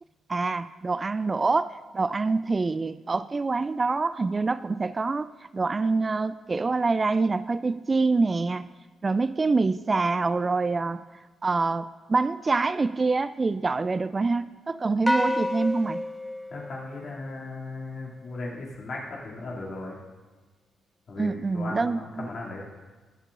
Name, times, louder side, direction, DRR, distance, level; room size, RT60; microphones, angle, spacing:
voice 1, 0.3-8.7 9.0-11.0 11.4-16.0 21.2-22.3, right 3 dB, 35° right, 15 dB, 0.3 m, -26 dB
sound 1, 15.1-17.6, left 1 dB, 5° left, 0.7 m, -29 dB
voice 2, 16.5-20.0 21.1-22.7, left 2 dB, 55° left, -3 dB, 2.5 m, -37 dB
21.5 x 7.1 x 2.5 m, 1.3 s
hypercardioid pair, 40°, 0 cm